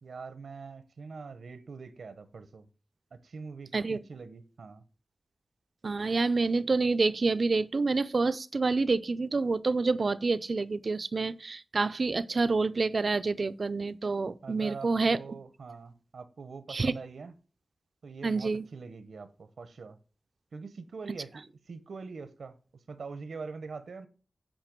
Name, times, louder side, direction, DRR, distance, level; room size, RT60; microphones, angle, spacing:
voice 1, 0.0-2.7 3.1-4.8 14.4-17.3 18.0-20.0 20.5-22.6 22.9-24.1, right 4 dB, 85° right, 0.8 m, -43 dB
voice 2, 5.8-15.2 16.7-16.9 18.2-18.7, right 3 dB, 50° right, 0.4 m, -28 dB
9.0 x 5.2 x 5.2 m
wide cardioid pair, 120°, 0 cm